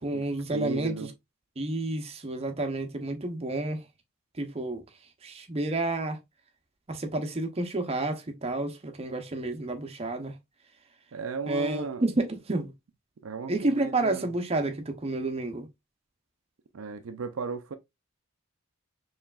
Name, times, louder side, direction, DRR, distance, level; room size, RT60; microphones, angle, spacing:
voice 1, 0.0-0.9 1.6-3.8 4.4-4.8 5.2-6.2 6.9-10.3 11.5-12.7 13.5-15.7, right 2 dB, 30° right, 0.6 m, -30 dB
voice 2, 0.5-1.1 11.1-12.0 13.2-14.3 16.7-17.7, right 4 dB, 70° right, 0.4 m, -35 dB
4.6 x 3.1 x 2.3 m
head